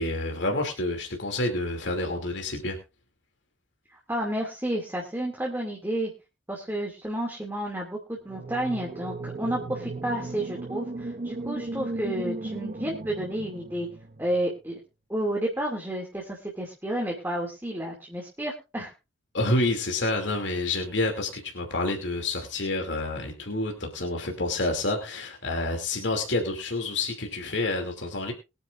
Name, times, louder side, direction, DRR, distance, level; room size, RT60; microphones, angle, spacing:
voice 1, 0.0-2.8 19.3-28.3, left 2 dB, 65° left, 3 dB, 2.7 m, -28 dB
voice 2, 3.9-6.1 6.5-13.9 14.2-14.8 15.1-18.9, right 1 dB, 10° right, -1 dB, 2.4 m, -31 dB
sound 1, 8.2-14.4, right 2 dB, 40° right, 0.7 m, -36 dB
22.5 x 9.8 x 2.5 m, 0.28 s
head